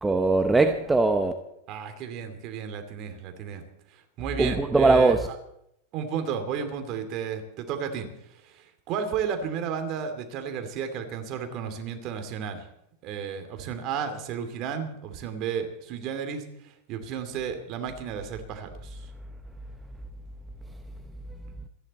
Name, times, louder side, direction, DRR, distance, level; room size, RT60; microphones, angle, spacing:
voice 1, 0.0-1.3 4.4-5.3, right 3 dB, 10° right, 1.0 m, -21 dB
voice 2, 1.7-3.6 3.9-5.2 5.9-12.7 13.0-19.1, right 7 dB, 45° right, 2.8 m, -33 dB
26.5 x 10.5 x 4.3 m
supercardioid pair, 130°, 0 cm